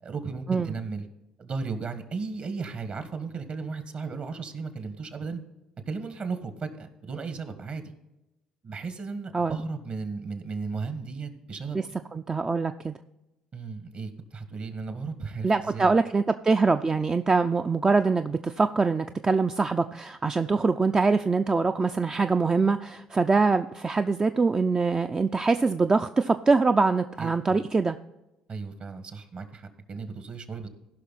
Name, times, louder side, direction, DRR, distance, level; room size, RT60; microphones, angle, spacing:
voice 1, 0.0-1.1 1.4-5.4 5.9-7.9 8.6-11.8 13.5-15.9 27.2-27.6 28.5-30.7, right 4 dB, 50° right, 9 dB, 1.6 m, -35 dB
voice 2, 12.1-12.9 15.4-28.0, right 4 dB, 25° right, 7 dB, 0.5 m, -24 dB
16.0 x 5.8 x 4.1 m, 0.97 s
hypercardioid pair, 60°, 3 cm